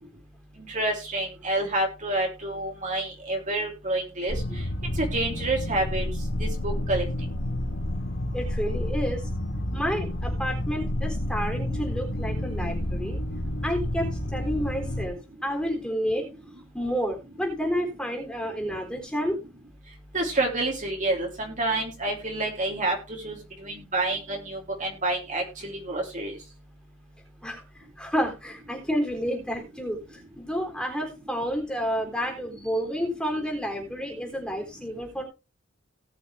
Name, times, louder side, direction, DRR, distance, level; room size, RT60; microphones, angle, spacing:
voice 1, 0.7-4.4 5.0-6.0 6.4-7.0 20.1-23.0 23.2-26.3, right 2 dB, 40° right, 1 dB, 3.3 m, -28 dB
sound 1, 4.3-15.1, left 1 dB, 70° left, 2.2 m, -30 dB
voice 2, 8.3-9.3 9.7-13.2 13.6-15.2 15.4-16.3 16.7-19.4 27.4-30.0 30.4-35.2, equal, 5° left, 2 dB, 3.7 m, -30 dB
18.5 x 6.4 x 3.4 m, 0.27 s
head